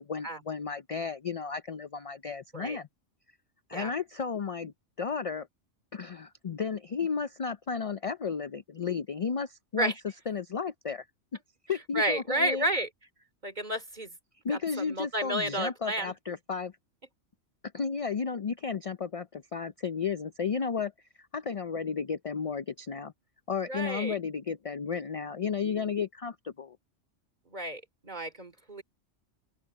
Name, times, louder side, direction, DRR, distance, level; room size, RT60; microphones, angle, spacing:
voice 1, 0.0-2.9 3.7-5.5 5.9-9.9 10.3-11.1 11.7-12.7 14.4-16.7 17.7-20.9 21.3-23.1 23.5-26.8, left 6 dB, 50° left, 0.4 m, -33 dB
voice 2, 11.9-12.9 13.4-14.1 14.5-16.1 23.7-24.2 27.5-28.8, right 1 dB, 35° right, 2.7 m, -31 dB
open air
omnidirectional pair, 1.3 m